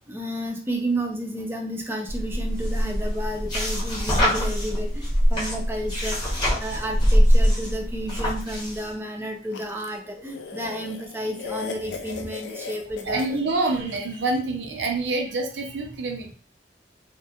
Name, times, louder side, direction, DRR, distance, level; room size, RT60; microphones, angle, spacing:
voice 1, 0.1-13.3, right 1 dB, 15° right, 2 dB, 0.3 m, -31 dB
sound 1, 2.1-8.9, equal, 25° left, 0.8 m, -23 dB
sound 2, 9.5-14.2, left 5 dB, 80° left, 0.3 m, -38 dB
voice 2, 13.1-16.3, right 3 dB, 90° right, 3 dB, 0.6 m, -26 dB
2.2 x 2.1 x 2.7 m, 0.42 s
head